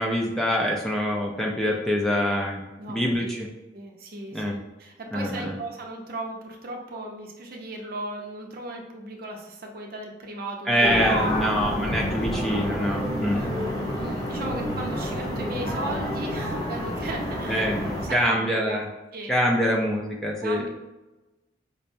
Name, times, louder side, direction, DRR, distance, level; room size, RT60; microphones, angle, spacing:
voice 1, 0.0-2.6 2.9-3.5 4.3-4.5 5.1-5.5 10.7-13.4 17.5-17.8 18.1-18.9 19.3-20.7, equal, ahead, -1 dB, 0.3 m, -25 dB
voice 2, 2.8-3.3 3.7-11.0 13.2-13.5 13.8-17.7 18.0-18.8 19.1-19.3 20.4-20.7, right 2 dB, 55° right, 1 dB, 0.6 m, -36 dB
sound 1, 10.8-18.1, equal, 20° left, 0.7 m, -28 dB
5.3 x 2.0 x 2.6 m, 1.1 s
head